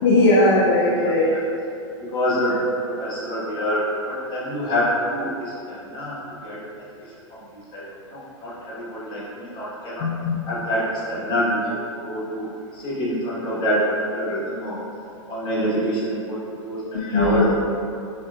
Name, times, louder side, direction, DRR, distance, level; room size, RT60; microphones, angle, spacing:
voice 1, 0.0-1.3 10.0-10.3 16.9-17.4, left 2 dB, 50° left, -5 dB, 0.5 m, -18 dB
voice 2, 2.0-6.6 7.5-7.8 8.1-10.1 10.5-14.8 15.3-17.4, equal, 30° left, -8 dB, 1.3 m, -26 dB
3.6 x 3.1 x 2.3 m, 2.5 s
hypercardioid pair, 105°, 16 cm